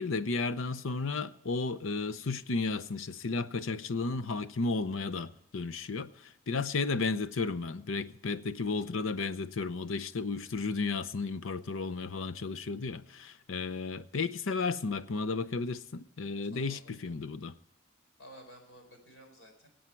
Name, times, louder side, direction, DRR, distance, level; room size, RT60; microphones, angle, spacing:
voice 1, 0.0-17.5, left 4 dB, 90° left, 0.7 m, -33 dB
voice 2, 16.5-17.2 18.2-19.7, equal, 70° left, 4.4 m, -54 dB
22.0 x 8.8 x 4.5 m
head